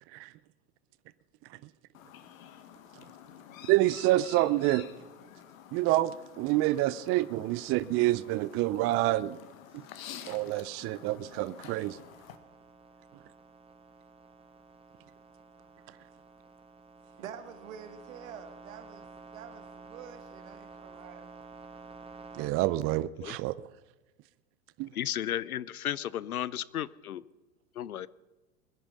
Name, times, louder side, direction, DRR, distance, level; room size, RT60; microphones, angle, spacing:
Chirp tweet, 1.9-12.4, left 9 dB, 65° left, 1.6 m, -50 dB
voice 1, 3.7-4.9 5.7-9.4 10.3-12.0 22.3-23.6 24.8-24.9, right 16 dB, 30° right, 17 dB, 0.5 m, -27 dB
sound 1, 9.7-22.5, right 4 dB, 15° right, 1.5 m, -52 dB
voice 2, 17.2-21.3, right 8 dB, 65° right, 9 dB, 1.8 m, -47 dB
voice 3, 24.9-27.2 27.7-28.1, left 11 dB, 85° left, 20 dB, 0.7 m, -34 dB
22.0 x 10.5 x 5.4 m, 1.2 s
hypercardioid pair, 90°, 43 cm